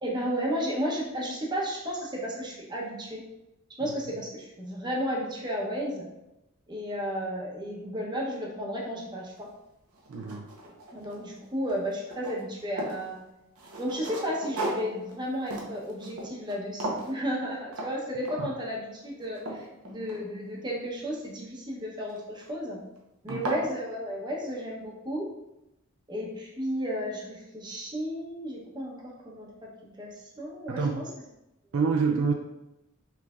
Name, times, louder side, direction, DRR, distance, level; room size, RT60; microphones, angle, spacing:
voice 1, 0.0-3.2 3.8-6.1 6.7-9.5 10.9-13.2 13.8-22.8 23.2-25.3 26.1-29.7 30.0-30.9, equal, 20° right, -3 dB, 0.8 m, -33 dB
sound 1, 9.4-9.5 9.9-11.4 11.7-13.0 13.6-16.6 16.8-17.2 17.7-17.9 18.3-18.6 19.0-20.6 22.1-22.5 23.0-23.1 23.3-23.7, right 1 dB, 85° right, 0.9 m, -36 dB
voice 2, 10.1-10.4 18.4-18.5 23.3-23.5 30.7-31.1 31.7-32.3, right 5 dB, 60° right, 2 dB, 0.4 m, -27 dB
5.7 x 3.3 x 2.4 m, 0.92 s
head